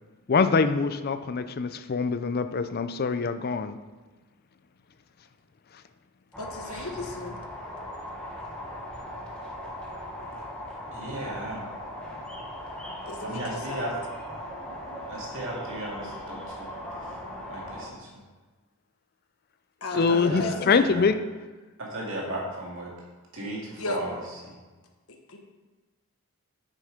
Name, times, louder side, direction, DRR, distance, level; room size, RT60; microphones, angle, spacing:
voice 1, 0.3-3.8 19.9-21.2, left 4 dB, 45° left, 11 dB, 0.4 m, -24 dB
sound 1, 6.3-17.9, left 1 dB, 5° left, 1.1 m, -39 dB
voice 2, 6.4-7.4 13.1-14.0 19.8-20.9 23.8-24.0 25.3-25.4, left 2 dB, 70° left, 3 dB, 1.1 m, -34 dB
voice 3, 10.9-11.7 13.2-13.9 15.1-16.7 17.5-18.1 20.1-21.0 21.8-22.9 23.3-24.2, right 1 dB, 60° right, -3 dB, 2.3 m, -35 dB
7.7 x 6.5 x 5.0 m, 1.3 s
head